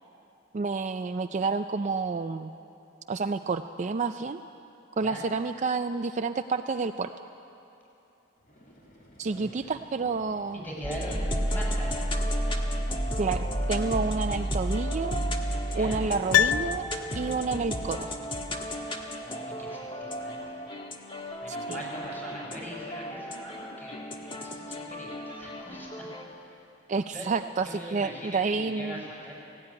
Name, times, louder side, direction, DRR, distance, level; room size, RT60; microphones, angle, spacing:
voice 1, 0.5-2.5 3.1-4.4 5.0-7.3 9.2-10.7 13.2-15.2 15.7-16.9 17.1-18.1 21.5-21.8 26.9-29.0, right 4 dB, 35° right, 8 dB, 0.4 m, -29 dB
sound 1, 8.4-17.1, equal, 40° left, 3.2 m, -54 dB
voice 2, 10.5-12.3 15.7-16.0 19.2-20.6 21.1-21.2 21.4-26.0 27.1-27.3 27.6-29.3, equal, 10° left, -3 dB, 5.6 m, -41 dB
sound 2, 10.8-26.2, equal, 25° left, 1.4 m, -32 dB
Piano, 16.3-17.6 17.9-18.0, left 10 dB, 75° left, 0.4 m, -26 dB
17.5 x 16.5 x 9.6 m, 2.8 s
head